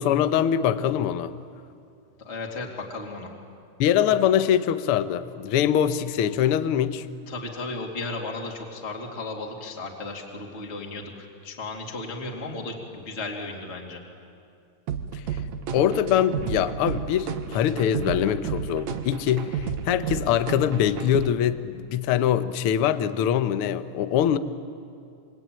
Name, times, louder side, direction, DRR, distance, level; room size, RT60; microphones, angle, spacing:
voice 1, 0.0-1.3 3.8-7.1 15.1-15.2 15.7-24.4, left 10 dB, 90° left, 11 dB, 1.2 m, -23 dB
voice 2, 2.2-3.3 7.3-14.0, left 3 dB, 20° left, -1 dB, 2.4 m, -35 dB
sound 1, 14.9-21.3, right 7 dB, 65° right, 2.2 m, -32 dB
28.0 x 23.5 x 9.1 m, 2.4 s
omnidirectional pair, 3.8 m